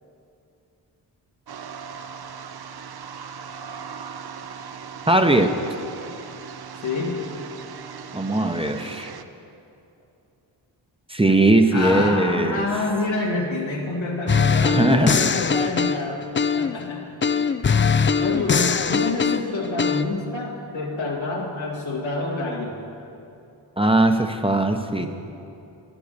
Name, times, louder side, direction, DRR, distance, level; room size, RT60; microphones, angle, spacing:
sound 1, 1.5-9.2, right 6 dB, 55° right, 0.7 m, -38 dB
voice 1, 5.1-5.5 8.1-9.1 11.1-12.7 14.6-15.3 23.8-25.1, right 2 dB, 10° right, 5 dB, 0.8 m, -19 dB
voice 2, 6.8-7.3 11.7-16.2 16.6-17.5 18.1-22.8 25.0-25.1, left 2 dB, 90° left, -2 dB, 2.1 m, -27 dB
sound 2, 14.3-16.8 17.2-20.0, left 6 dB, 25° left, 0.4 m, -21 dB
11.5 x 9.8 x 6.7 m, 2.7 s
cardioid pair, 60°, 45 cm